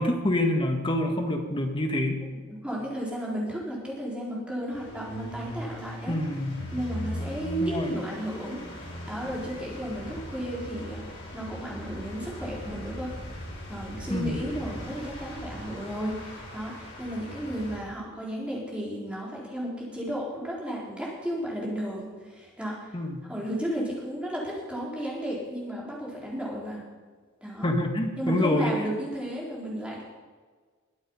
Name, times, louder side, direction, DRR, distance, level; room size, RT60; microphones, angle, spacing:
voice 1, 0.0-2.2 6.1-6.6 7.6-7.9 14.1-14.4 22.9-23.2 27.6-28.7, left 1 dB, 25° left, 3 dB, 1.8 m, -26 dB
voice 2, 2.5-6.2 6.7-8.6 9.1-13.1 13.7-22.9 23.2-26.8 27.4-27.7 28.2-30.0, equal, 5° right, -5 dB, 4.1 m, -33 dB
sound 1, 4.7-17.8, equal, 55° left, 5.5 m, -39 dB
22.0 x 8.0 x 5.6 m, 1.5 s
head